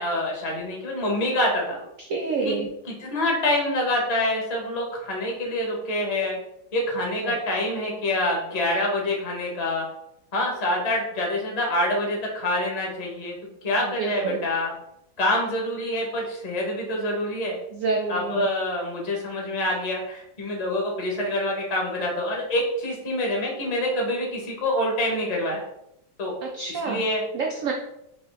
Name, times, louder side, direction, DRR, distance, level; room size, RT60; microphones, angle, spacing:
voice 1, 0.0-1.8 2.4-2.6 2.9-6.4 6.7-9.8 10.3-13.3 13.6-14.7 15.2-17.6 18.1-25.6 26.2-26.3 26.8-27.2, left 1 dB, 25° left, -2 dB, 0.9 m, -26 dB
voice 2, 2.0-2.7 7.2-7.4 13.8-14.4 17.7-18.5 26.4-27.0 27.3-27.7, right 4 dB, 85° right, 0 dB, 0.7 m, -28 dB
3.7 x 3.0 x 3.9 m, 0.80 s
omnidirectional pair, 2.0 m